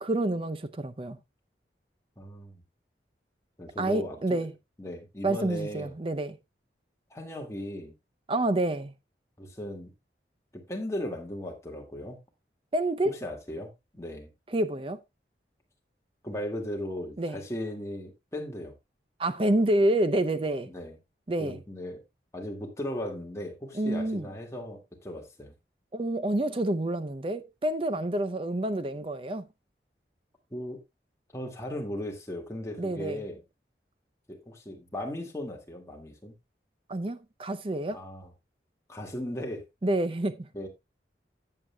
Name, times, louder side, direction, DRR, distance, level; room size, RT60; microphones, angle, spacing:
voice 1, 0.0-1.2 3.8-4.5 5.2-6.4 8.3-8.9 12.7-13.1 14.5-15.0 17.2-17.4 19.2-20.7 21.3-21.6 23.7-24.3 25.9-29.5 32.8-33.2 36.9-38.0 39.8-40.5, right 1 dB, 30° right, 0.5 m, -28 dB
voice 2, 2.2-2.6 3.6-4.5 4.8-6.0 7.1-7.9 9.4-9.9 10.5-12.2 13.0-14.3 16.2-18.7 20.7-21.0 21.4-22.0 22.3-25.5 30.5-30.8 31.3-33.4 34.3-36.3 37.9-38.3 38.9-39.6 40.5-40.7, left 1 dB, 15° left, 2.0 m, -37 dB
14.0 x 7.7 x 2.2 m
head